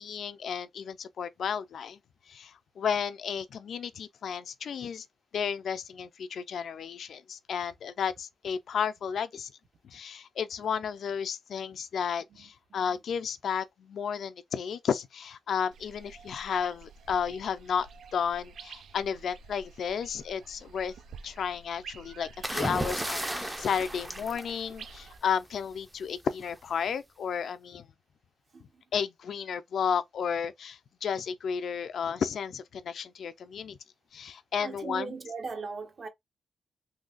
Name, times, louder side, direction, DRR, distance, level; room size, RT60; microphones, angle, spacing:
voice 1, 0.0-2.0 2.3-5.1 5.3-9.5 9.8-17.9 18.1-20.9 21.2-27.9 28.9-33.8 34.1-35.1, left 7 dB, 65° left, 0.4 m, -33 dB
voice 2, 12.3-13.0 28.5-28.8 34.6-36.1, right 4 dB, 45° right, 0.8 m, -40 dB
sound 1, 15.7-25.2, right 4 dB, 75° right, 0.4 m, -50 dB
sound 2, 22.4-25.2 26.4-26.7, right 1 dB, 10° right, 0.5 m, -34 dB
3.8 x 2.8 x 2.4 m
wide cardioid pair, 140°, 0 cm